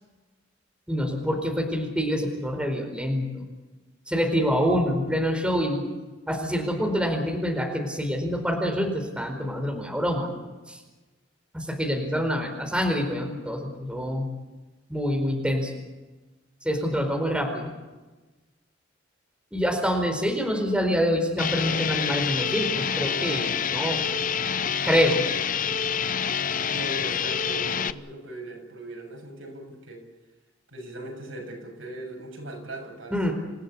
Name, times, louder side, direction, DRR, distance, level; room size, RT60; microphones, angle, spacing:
voice 1, 0.9-3.4 4.1-5.9 6.3-10.3 10.7-10.8 11.5-14.3 14.9-15.7 16.6-17.7 19.5-24.0 24.8-25.2 33.1-33.3, equal, 5° right, 2 dB, 4.6 m, -26 dB
sound 1, 21.4-27.9, left 7 dB, 40° left, 0.7 m, -27 dB
voice 2, 26.7-30.0 30.7-33.2, right 1 dB, 80° right, 1 dB, 7.6 m, -39 dB
28.5 x 16.0 x 8.5 m, 1.2 s
head